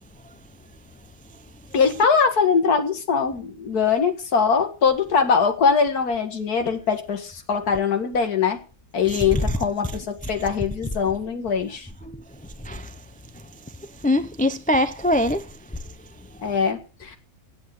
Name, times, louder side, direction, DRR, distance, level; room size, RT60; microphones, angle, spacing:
voice 1, 1.7-8.6 8.9-11.9 16.4-17.2, left 6 dB, 75° left, 2.3 m, -22 dB
voice 2, 14.0-15.5, left 1 dB, 10° left, 0.6 m, -22 dB
11.0 x 8.5 x 9.8 m
omnidirectional pair, 1.6 m